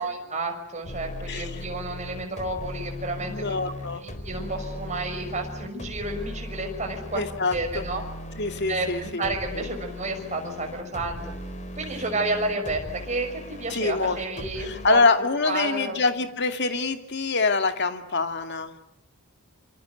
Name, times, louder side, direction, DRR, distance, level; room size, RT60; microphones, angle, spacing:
voice 1, 0.0-3.5 4.0-7.2 7.5-8.0 8.7-11.2 11.8-15.0 15.4-16.0, right 2 dB, 35° right, 3 dB, 6.1 m, -31 dB
sound 1, 0.8-14.9, equal, 35° left, 4.1 m, -38 dB
voice 2, 3.2-4.0 7.1-7.8 8.4-9.7 13.7-14.2 14.6-18.7, left 4 dB, 55° left, 8 dB, 2.4 m, -25 dB
27.0 x 26.0 x 8.1 m, 0.76 s
head